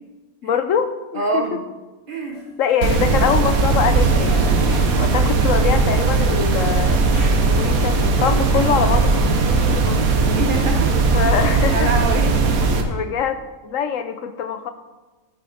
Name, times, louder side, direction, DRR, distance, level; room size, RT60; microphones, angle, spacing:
voice 1, 0.4-1.4 2.6-10.0 11.1-11.9 12.9-14.7, left 7 dB, 65° left, 9 dB, 1.1 m, -24 dB
voice 2, 1.1-1.6 2.1-2.4 10.4-10.9 11.7-12.9, right 2 dB, 40° right, 3 dB, 1.2 m, -25 dB
sound 1, 2.3-2.4 3.6-3.7 4.0-5.1 7.1-7.4 9.9-10.1, right 1 dB, 85° left, 4.1 m, -31 dB
sound 2, 2.8-12.8, right 4 dB, 75° right, 1.4 m, -18 dB
11.5 x 8.8 x 4.1 m, 1.2 s
omnidirectional pair, 1.5 m